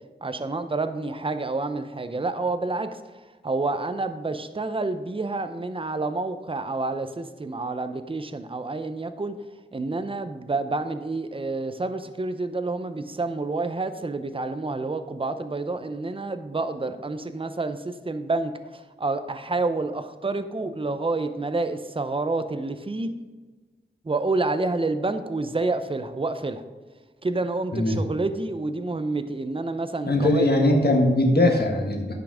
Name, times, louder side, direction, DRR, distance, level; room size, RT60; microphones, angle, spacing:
voice 1, 0.2-9.3 9.7-23.1 24.0-26.6 27.2-30.5, right 3 dB, 30° right, 10 dB, 0.6 m, -28 dB
voice 2, 27.7-28.0 30.0-32.1, left 1 dB, 55° left, 2 dB, 1.5 m, -20 dB
10.5 x 5.8 x 4.9 m, 1.3 s
wide cardioid pair, 75°, 19 cm